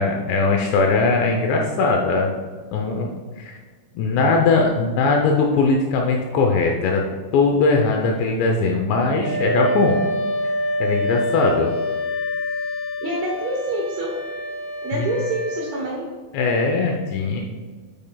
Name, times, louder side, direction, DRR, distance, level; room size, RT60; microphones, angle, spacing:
voice 1, 0.0-2.4 2.7-3.6 4.0-7.0 7.3-10.0 10.8-11.7 14.9-15.1 16.3-17.4, left 3 dB, 80° left, 1 dB, 2.6 m, -20 dB
Wind instrument woodwind instrument, 9.2-15.7, equal, 50° left, 2.4 m, -26 dB
voice 2, 13.0-14.1 14.8-16.1, right 1 dB, 75° right, -2 dB, 2.4 m, -26 dB
8.9 x 8.4 x 2.3 m, 1.5 s
omnidirectional pair, 5.6 m